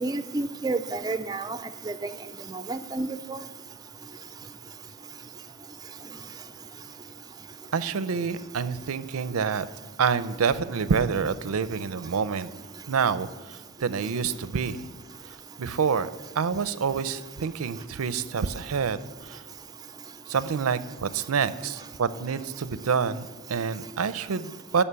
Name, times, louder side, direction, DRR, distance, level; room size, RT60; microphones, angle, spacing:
voice 1, 0.0-1.6 1.9-2.0 2.7-3.4, right 3 dB, 20° right, 11 dB, 0.3 m, -30 dB
voice 2, 7.7-9.7 10.0-12.5 12.9-14.8 15.3-16.1 16.4-19.4 20.3-24.8, right 6 dB, 90° right, 14 dB, 0.5 m, -27 dB
11.5 x 5.6 x 6.9 m, 1.2 s
head